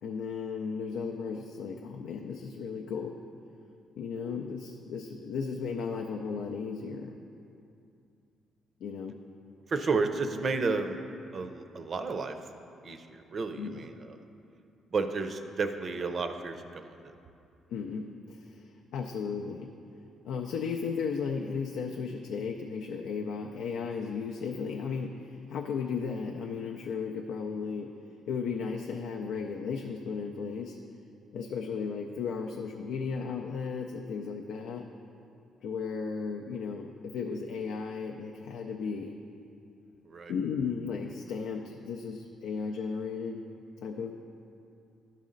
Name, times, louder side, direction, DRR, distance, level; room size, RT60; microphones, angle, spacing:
voice 1, 0.0-3.2 4.0-7.2 8.8-9.2 13.6-13.9 17.7-19.7 20.2-27.9 28.3-30.8 31.3-34.8 35.6-39.2 40.3-43.4 43.8-44.1, left 5 dB, 85° left, 2 dB, 0.4 m, -35 dB
voice 2, 9.7-11.0 11.3-12.4 12.8-14.2 14.9-17.1 40.0-40.3, right 4 dB, 45° right, 8 dB, 0.5 m, -32 dB
12.0 x 4.1 x 3.8 m, 2.6 s
cardioid pair, 90°, 0 cm